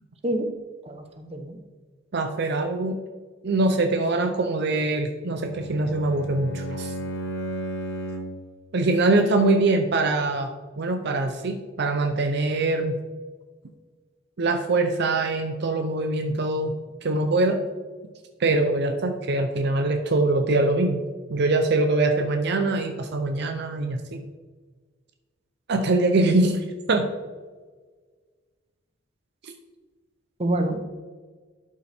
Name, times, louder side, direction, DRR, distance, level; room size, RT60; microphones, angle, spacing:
voice 1, 0.8-1.6 30.4-30.8, right 1 dB, 30° right, 5 dB, 0.9 m, -27 dB
voice 2, 2.1-3.0 3.4-6.9 8.7-10.5 10.8-13.0 14.4-16.7 17.0-17.6 18.4-21.0 21.3-24.2 25.7-27.0 29.4-29.5, right 2 dB, 60° right, 5 dB, 0.6 m, -23 dB
Bowed string instrument, 5.3-8.5, right 1 dB, 85° left, 1.2 m, -34 dB
11.5 x 5.3 x 3.5 m, 1.4 s
head